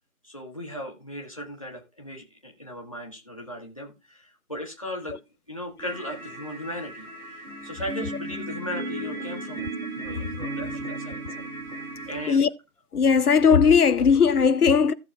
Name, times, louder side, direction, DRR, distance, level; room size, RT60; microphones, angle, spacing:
voice 1, 0.2-5.2 5.5-9.6 10.0-11.2 12.0-12.5, equal, 25° left, 1.3 m, -37 dB
sound 1, 5.8-12.3, right 2 dB, 75° right, 3.2 m, -35 dB
voice 2, 12.9-14.9, left 6 dB, 85° left, 0.7 m, -18 dB
16.5 x 6.4 x 2.3 m
figure-of-eight pair, 170°, 44 cm